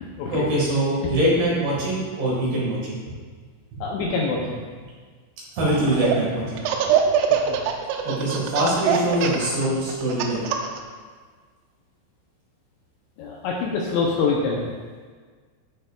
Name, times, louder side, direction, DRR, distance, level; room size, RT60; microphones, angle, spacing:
voice 1, 0.3-3.0 3.7-3.8 5.6-6.6 8.0-10.5, right 1 dB, 60° right, -6 dB, 3.2 m, -23 dB
voice 2, 3.8-4.6 13.2-14.7, left 4 dB, 85° left, -3 dB, 2.7 m, -25 dB
Laughter, 5.6-6.2 6.6-10.8, right 9 dB, 80° right, 3.2 m, -23 dB
14.0 x 6.6 x 2.4 m, 1.5 s
omnidirectional pair, 5.9 m